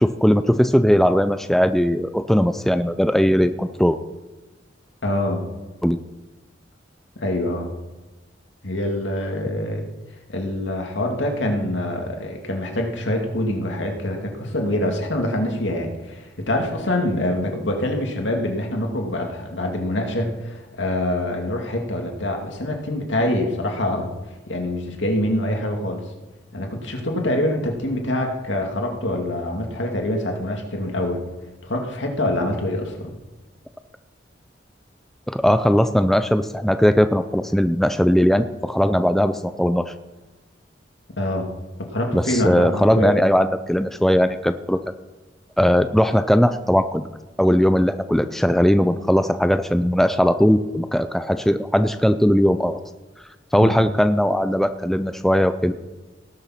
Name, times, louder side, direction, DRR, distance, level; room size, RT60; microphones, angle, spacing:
voice 1, 0.0-4.0 5.8-6.0 35.3-39.9 42.1-44.8 45.6-47.0 47.4-52.8 53.5-55.7, equal, ahead, 10 dB, 0.4 m, -19 dB
voice 2, 5.0-5.4 7.2-7.7 8.6-9.9 10.3-24.1 24.5-26.0 26.5-31.2 31.6-33.2 41.2-41.5 41.9-43.2 53.6-53.7, left 1 dB, 75° left, 2 dB, 2.3 m, -25 dB
18.5 x 6.8 x 5.8 m, 1.2 s
head